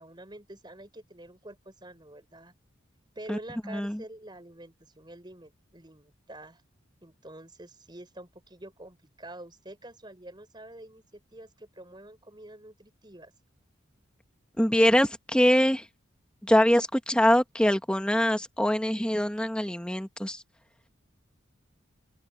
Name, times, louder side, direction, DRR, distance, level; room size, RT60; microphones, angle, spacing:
voice 1, 0.0-2.5 3.1-6.6 7.0-13.3, right 1 dB, 20° right, 4.4 m, -47 dB
voice 2, 3.6-4.0 14.6-15.9 16.4-20.4, equal, 5° left, 1.4 m, -23 dB
open air
head